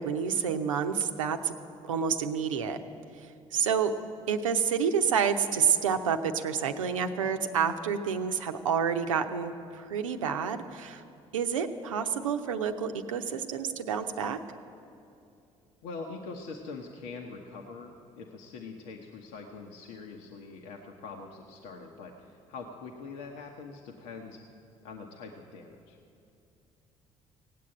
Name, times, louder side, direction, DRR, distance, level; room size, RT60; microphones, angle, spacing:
voice 1, 0.0-1.5 1.9-2.8 3.5-3.9 4.3-11.0 11.3-14.4, right 7 dB, 80° right, 7 dB, 0.7 m, -29 dB
voice 2, 15.8-24.4 24.8-26.0, left 4 dB, 70° left, 1 dB, 1.1 m, -43 dB
17.5 x 8.5 x 8.9 m, 2.7 s
figure-of-eight pair, 50°, 17 cm